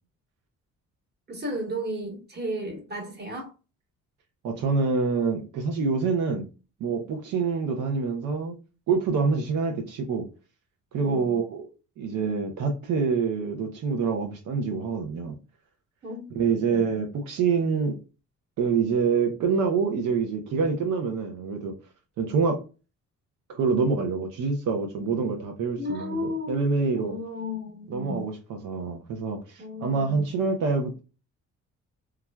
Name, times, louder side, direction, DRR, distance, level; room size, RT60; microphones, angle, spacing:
voice 1, 1.3-3.5 11.1-11.4 16.0-16.3 16.6-16.8 25.8-26.7 26.9-28.2 29.6-30.2, left 1 dB, 35° right, 1.3 m, -34 dB
voice 2, 4.4-6.5 6.8-8.6 8.9-10.3 10.9-11.6 12.0-15.4 16.3-18.0 18.6-21.8 22.2-22.6 23.5-27.2 27.9-31.0, right 5 dB, 85° right, 0.7 m, -26 dB
3.3 x 2.3 x 2.2 m
cardioid pair, 90°, 30 cm